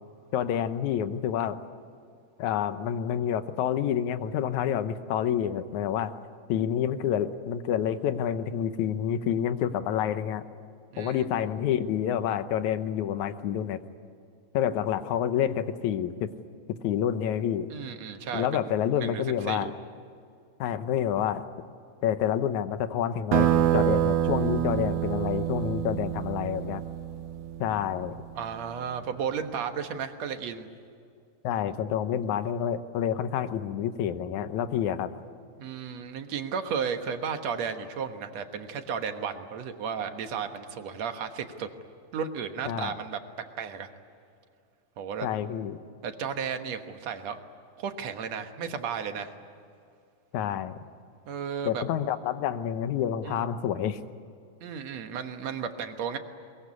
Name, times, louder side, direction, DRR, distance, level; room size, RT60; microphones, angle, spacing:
voice 1, 0.3-1.6 2.4-6.1 6.5-10.4 11.0-13.8 14.5-16.3 16.8-17.7 18.3-19.7 20.6-21.4 22.0-26.8 27.6-28.2 31.4-35.1 42.7-42.9 45.2-45.8 50.3-50.8 51.6-54.0, left 9 dB, 80° left, 11 dB, 2.3 m, -28 dB
voice 2, 10.9-11.2 17.7-18.7 19.0-19.7 28.4-30.7 35.6-41.7 42.1-43.2 43.6-43.9 45.0-45.3 46.0-47.4 47.8-49.3 51.3-51.8 53.2-53.5 54.6-56.2, right 7 dB, 65° right, 7 dB, 2.4 m, -34 dB
sound 1, 23.3-28.4, right 11 dB, 85° right, 2.3 m, -27 dB
22.0 x 22.0 x 9.7 m, 2.4 s
omnidirectional pair, 3.4 m